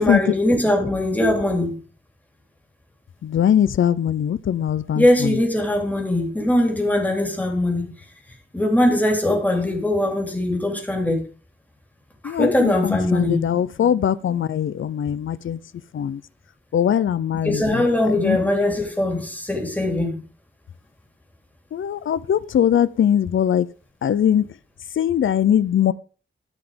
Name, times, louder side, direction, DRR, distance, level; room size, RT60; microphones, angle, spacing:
voice 1, 0.0-1.8 4.9-8.0 8.5-11.2 12.2-13.5 17.4-20.2, left 1 dB, 10° left, 3.6 m, -21 dB
voice 2, 3.2-5.0 12.2-15.6 15.9-16.2 16.7-17.8 18.2-18.4 21.7-23.7 24.0-24.4 25.0-25.9, left 9 dB, 80° left, 0.6 m, -21 dB
14.5 x 6.0 x 5.1 m
wide cardioid pair, 160°, 20 cm